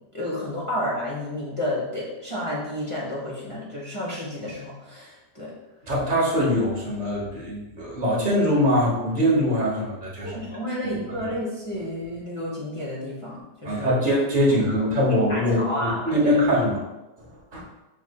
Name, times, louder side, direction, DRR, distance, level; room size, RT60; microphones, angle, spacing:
voice 1, 0.1-5.5 10.2-13.9 14.8-16.4, left 1 dB, 35° left, -6 dB, 0.5 m, -31 dB
voice 2, 5.8-10.3 10.8-10.9 11.2-11.3 13.6-16.8 17.5-17.6, equal, 35° right, -4 dB, 0.8 m, -22 dB
6.1 x 3.1 x 2.2 m, 1.0 s
omnidirectional pair, 1.9 m